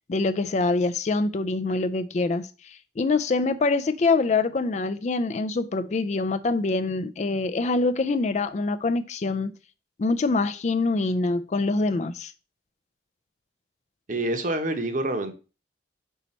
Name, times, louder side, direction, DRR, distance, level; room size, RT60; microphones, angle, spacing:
voice 1, 0.1-9.5 10.0-12.3, left 3 dB, 40° left, 0.4 m, -25 dB
voice 2, 14.1-15.3, right 1 dB, 45° right, 0.9 m, -27 dB
5.6 x 4.0 x 4.2 m
head